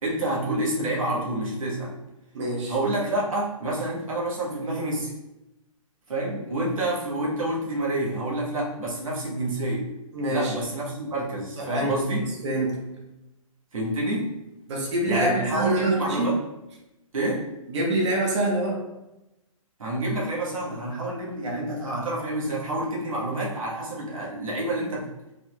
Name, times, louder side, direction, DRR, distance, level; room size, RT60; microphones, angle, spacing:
voice 1, 0.0-1.9 2.7-5.1 6.1-9.9 10.3-12.2 13.7-14.3 15.1-16.4 17.1-17.4 19.8-25.1, right 1 dB, 75° right, -4 dB, 1.3 m, -28 dB
voice 2, 2.3-2.7 10.1-10.5 11.6-12.8 14.7-16.3 17.7-18.8, right 1 dB, 55° right, -1 dB, 1.1 m, -25 dB
4.1 x 3.1 x 2.3 m, 0.93 s
figure-of-eight pair, 130°, 18 cm